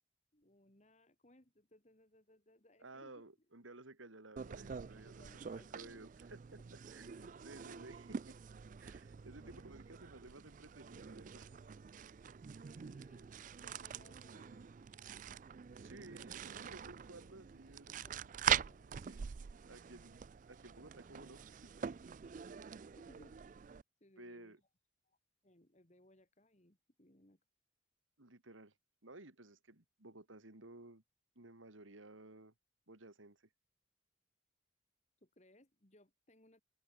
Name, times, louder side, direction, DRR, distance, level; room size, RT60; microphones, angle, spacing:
voice 1, 0.3-3.2 4.9-6.0 6.3-6.4 7.2-7.3 9.4-9.7 12.7-14.6 17.9-19.1 23.0-23.4 24.0-24.6 25.0-25.2 25.4-27.4 35.2-36.6, left 1 dB, 35° left, 2.5 m, -66 dB
voice 2, 2.8-8.4 8.8-11.5 15.8-18.3 19.0-19.3 19.7-21.7 24.2-24.6 28.2-28.7 29.0-31.0 31.4-32.5 32.9-33.5, right 2 dB, 85° right, 2.7 m, -56 dB
sound 1, 4.4-23.8, right 8 dB, 40° right, 0.3 m, -44 dB
head